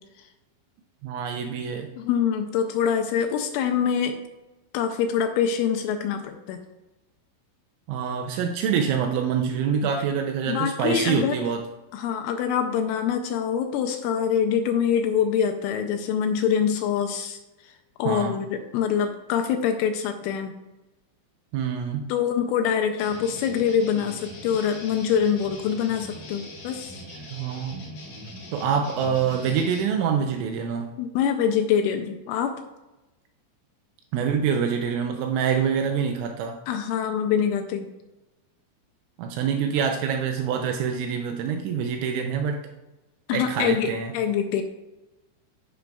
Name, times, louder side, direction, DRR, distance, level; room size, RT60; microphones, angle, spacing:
voice 1, 1.0-1.9 7.9-11.6 18.1-18.4 21.5-22.1 24.0-24.1 27.1-27.8 28.5-30.9 34.1-36.6 39.2-42.6 43.3-44.1, right 7 dB, 85° right, 3 dB, 2.7 m, -26 dB
voice 2, 2.0-4.2 4.7-6.6 10.5-11.4 11.9-17.7 18.0-20.6 22.1-27.0 31.0-32.5 36.7-37.9 43.3-44.6, left 8 dB, 85° left, 5 dB, 2.8 m, -25 dB
sound 1, 23.0-29.8, left 1 dB, 70° left, 1.7 m, -41 dB
13.5 x 5.2 x 2.3 m, 1.0 s
omnidirectional pair, 5.8 m